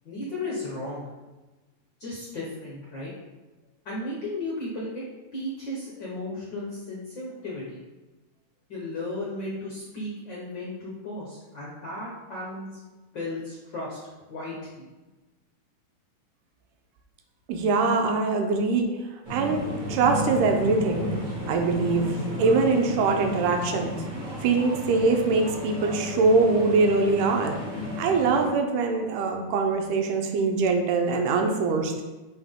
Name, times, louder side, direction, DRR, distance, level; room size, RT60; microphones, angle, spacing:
voice 1, 0.0-1.0 2.0-3.1 3.8-5.0 5.3-7.8 8.7-12.7 13.1-14.0 14.3-14.8, left 2 dB, 65° left, -5 dB, 1.1 m, -35 dB
voice 2, 17.5-18.9 19.3-19.6 19.9-21.1 21.5-23.9 24.4-27.5 28.0-31.9, right 3 dB, 85° right, 4 dB, 2.2 m, -23 dB
sound 1, 19.2-28.5, equal, 25° right, 1.1 m, -33 dB
8.9 x 3.6 x 3.6 m, 1.2 s
omnidirectional pair, 3.7 m